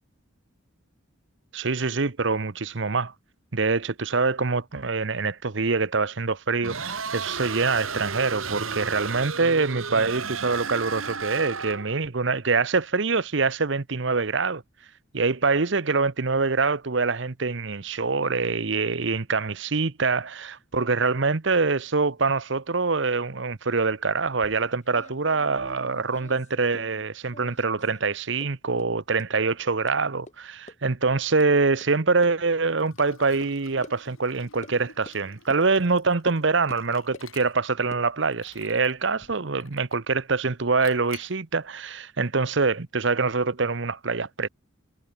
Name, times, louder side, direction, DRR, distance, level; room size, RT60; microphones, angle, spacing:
voice 1, 1.5-3.1 3.5-14.6 15.1-44.5, right 4 dB, 60° right, 0.9 m, -25 dB
sound 1, 6.6-12.0, right 5 dB, 85° right, 2.7 m, -33 dB
sound 2, 24.2-27.0 27.3-28.0 28.4-28.5 28.8-28.9 29.2-29.3 29.9-30.0 30.3-30.4 30.7-30.8 31.1-31.5 31.8-31.9 32.2-32.3 33.0-33.1 33.4-33.5 33.8-34.0 34.6-34.8 35.0-35.2 35.5-35.6 36.3-36.4 36.7-37.3 37.8-39.3, left 1 dB, 35° left, 5.1 m, -47 dB
Liquid, 32.8-37.8 38.3-39.0 39.6-40.1 40.8-41.4, left 5 dB, 80° left, 6.1 m, -50 dB
head